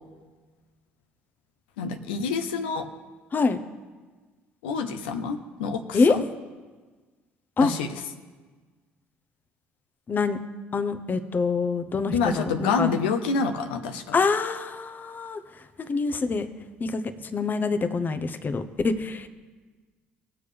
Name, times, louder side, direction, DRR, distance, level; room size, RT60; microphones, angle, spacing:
voice 1, 1.8-2.9 4.6-6.2 7.6-7.9 12.1-14.2, left 5 dB, 85° left, 5 dB, 0.8 m, -27 dB
voice 2, 10.7-12.9 14.1-15.4 15.8-16.5 16.8-19.3, left 4 dB, 35° left, 10 dB, 0.9 m, -25 dB
18.5 x 6.9 x 3.4 m, 1.4 s
hypercardioid pair, 60°, 5 cm